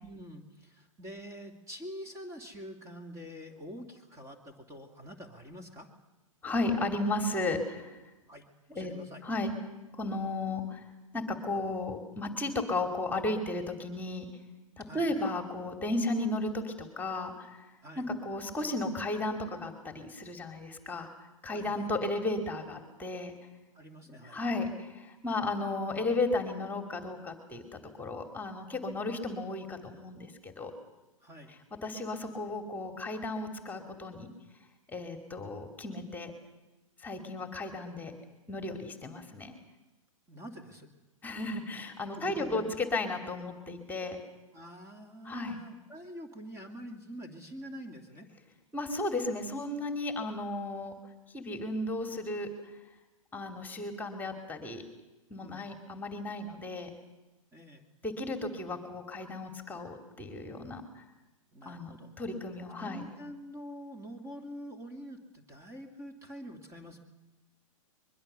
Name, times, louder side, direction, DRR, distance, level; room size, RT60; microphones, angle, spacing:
voice 1, 0.0-5.9 8.3-9.2 14.8-15.1 17.8-18.1 21.5-21.9 23.7-24.4 31.2-31.5 40.3-40.9 42.1-42.6 44.5-48.3 55.4-55.7 57.5-57.8 61.5-62.1 62.7-67.0, equal, 15° right, 5 dB, 2.7 m, -46 dB
voice 2, 6.4-8.0 8.7-8.9 9.2-9.5 9.9-10.8 11.1-14.3 14.8-17.6 18.0-21.1 21.4-23.3 24.1-30.7 31.8-34.3 34.9-36.3 37.0-38.1 38.5-39.5 41.2-44.2 45.2-45.6 48.7-50.9 51.3-52.5 53.3-54.8 55.3-56.9 58.0-61.0 61.6-63.0, left 2 dB, 10° left, 6 dB, 2.7 m, -34 dB
23.0 x 22.5 x 6.8 m, 1.1 s
figure-of-eight pair, 115°, 17 cm